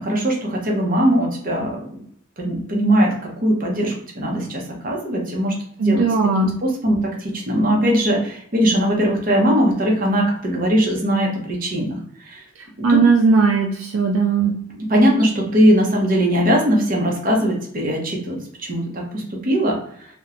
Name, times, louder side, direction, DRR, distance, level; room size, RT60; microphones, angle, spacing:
voice 1, 0.0-2.0 2.4-5.6 5.8-6.0 6.6-12.0 12.3-12.4 12.8-13.0 14.8-20.1, equal, 45° right, 0 dB, 0.7 m, -20 dB
voice 2, 5.8-6.5 12.8-14.5, right 4 dB, 70° right, 1 dB, 0.3 m, -17 dB
3.0 x 2.1 x 2.4 m, 0.66 s
head